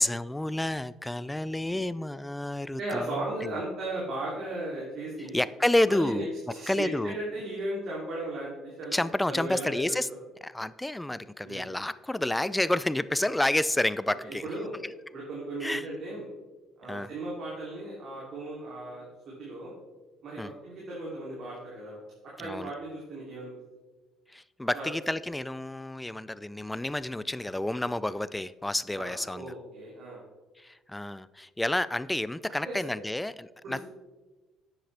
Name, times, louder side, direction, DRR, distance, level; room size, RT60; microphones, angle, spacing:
voice 1, 0.0-3.6 5.2-6.3 6.7-7.2 8.9-10.1 10.4-14.5 14.8-14.9 15.6-15.9 16.9-17.1 20.4-20.5 22.4-22.7 24.3-29.5 30.6-33.8, left 1 dB, 10° left, 17 dB, 0.3 m, -30 dB
voice 2, 2.8-5.4 5.9-9.0 9.3-10.2 11.4-11.7 14.4-14.7 15.1-16.3 16.8-19.0 19.4-19.7 20.2-22.0 22.4-23.5 24.7-24.9 28.9-30.2 32.6-32.8 33.6-33.8, right 1 dB, 60° right, -5 dB, 2.8 m, -36 dB
10.0 x 8.0 x 3.3 m, 1.2 s
supercardioid pair, 65°, 0 cm